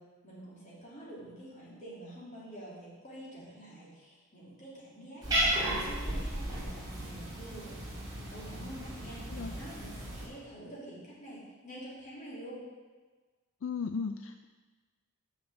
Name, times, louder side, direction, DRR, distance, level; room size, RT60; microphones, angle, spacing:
voice 1, 0.0-7.8 8.3-12.6, right 1 dB, 35° left, -7 dB, 3.1 m, -47 dB
Cat, 5.2-10.3, right 1 dB, 20° right, 2.5 m, -34 dB
voice 2, 13.6-14.4, left 5 dB, 60° left, 8 dB, 0.3 m, -35 dB
6.4 x 6.4 x 7.3 m, 1.3 s
head